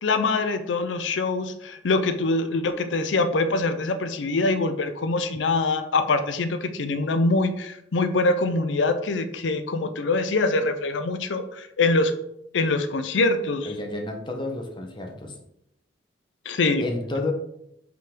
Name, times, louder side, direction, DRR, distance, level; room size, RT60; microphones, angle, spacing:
voice 1, 0.0-12.1 12.5-13.7 16.5-16.8, left 3 dB, 90° left, 9 dB, 0.5 m, -24 dB
voice 2, 13.6-15.4 16.8-17.3, left 2 dB, 25° left, 2 dB, 1.0 m, -30 dB
5.4 x 3.9 x 5.1 m, 0.77 s
head